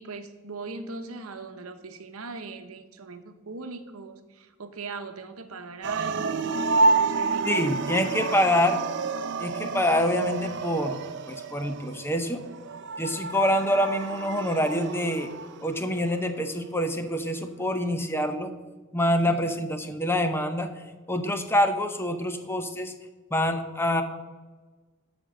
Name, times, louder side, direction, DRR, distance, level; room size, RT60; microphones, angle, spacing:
voice 1, 0.0-6.5 6.9-7.9 19.3-19.6, right 3 dB, 75° right, 8 dB, 0.9 m, -40 dB
sound 1, 5.8-15.9, right 3 dB, 55° right, 0.6 m, -29 dB
voice 2, 7.4-8.8 9.4-11.0 11.3-12.4 13.0-15.3 15.6-18.5 18.9-20.7 21.1-22.9 23.3-24.0, left 1 dB, 10° left, 7 dB, 0.8 m, -26 dB
12.5 x 5.2 x 6.4 m, 1.3 s
head